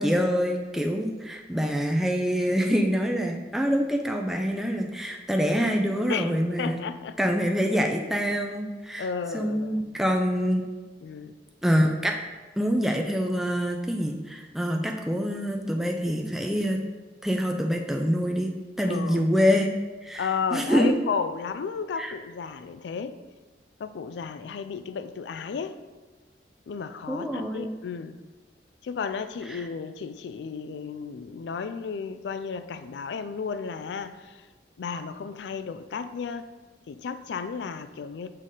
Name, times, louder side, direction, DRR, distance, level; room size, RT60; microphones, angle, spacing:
voice 1, 0.0-6.8 7.2-10.6 11.6-12.2 12.6-16.8 17.2-18.5 18.8-19.7 20.0-21.0 22.0-22.1 27.1-27.7 29.5-29.7, equal, ahead, 0.4 m, -25 dB
voice 2, 6.6-7.2 9.0-9.8 11.0-11.3 18.9-19.2 20.2-23.2 23.8-25.8 26.7-28.2 28.8-34.4 34.8-36.5 36.9-38.3, left 6 dB, 75° left, 0.3 m, -33 dB
6.5 x 4.0 x 3.7 m
head